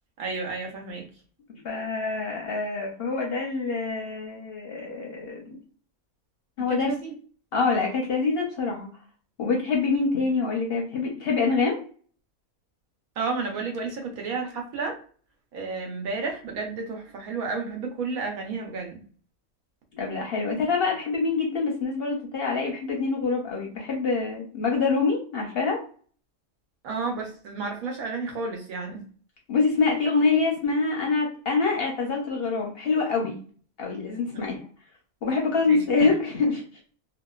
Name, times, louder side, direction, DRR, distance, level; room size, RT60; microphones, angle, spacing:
voice 1, 0.2-1.1 6.6-7.1 13.2-14.9 15.5-19.0 26.8-29.0 35.7-35.8, right 4 dB, 85° right, 2 dB, 1.2 m, -31 dB
voice 2, 1.6-5.6 6.6-6.9 7.5-8.9 9.4-11.8 19.9-25.8 29.5-33.4 33.8-34.6 35.2-36.6, left 4 dB, 60° left, -1 dB, 0.7 m, -25 dB
2.8 x 2.2 x 2.3 m, 0.43 s
omnidirectional pair, 1.5 m